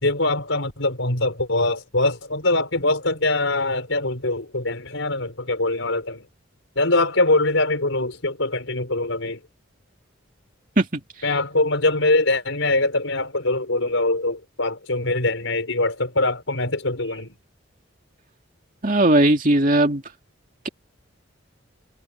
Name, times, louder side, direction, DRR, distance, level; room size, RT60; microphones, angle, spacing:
voice 1, 0.0-6.2 6.8-9.4 11.2-17.3, left 2 dB, 90° left, 5.2 m, -23 dB
voice 2, 18.8-20.0, right 1 dB, 45° right, 2.6 m, -18 dB
head